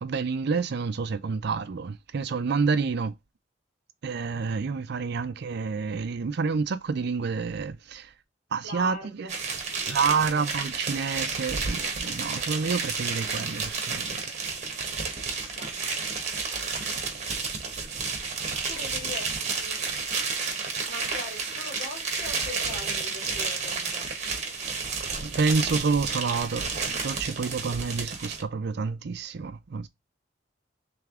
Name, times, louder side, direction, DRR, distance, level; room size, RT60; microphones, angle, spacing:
voice 1, 0.0-3.1 4.0-8.1 8.5-9.3 9.9-14.2 25.2-29.9, right 5 dB, 60° right, 0.5 m, -28 dB
voice 2, 8.6-10.5 15.3-15.8 18.7-20.6 20.9-24.1, left 2 dB, 50° left, 2.4 m, -42 dB
sound 1, 9.3-28.4, right 4 dB, 40° right, 1.1 m, -31 dB
3.4 x 3.4 x 3.6 m
head